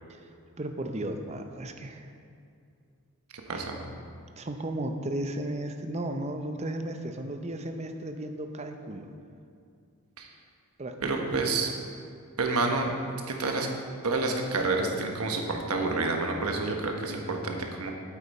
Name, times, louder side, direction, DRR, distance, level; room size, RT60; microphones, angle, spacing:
voice 1, 0.6-2.1 3.5-3.7 4.4-9.1 10.8-11.0 11.3-11.5, right 1 dB, 30° right, 6 dB, 0.6 m, -35 dB
voice 2, 3.5-3.8 10.2-10.3 11.0-11.7 12.4-13.0 13.3-13.7 14.0-17.9, right 3 dB, 80° right, 2 dB, 1.2 m, -28 dB
8.6 x 8.4 x 4.2 m, 2.5 s
head